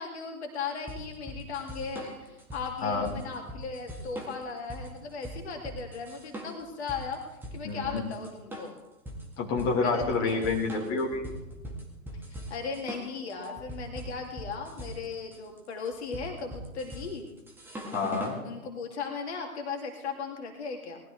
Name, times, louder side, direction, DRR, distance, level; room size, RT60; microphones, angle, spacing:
voice 1, 0.0-8.7 9.8-10.7 12.3-17.3 18.4-21.0, left 5 dB, 45° left, 2 dB, 2.5 m, -37 dB
sound 1, 0.9-18.4, equal, 5° right, 1.9 m, -41 dB
voice 2, 7.6-8.0 9.4-11.2 17.9-18.4, left 4 dB, 25° left, -2 dB, 2.5 m, -28 dB
19.5 x 13.0 x 3.4 m, 0.97 s
figure-of-eight pair, 125°, 43 cm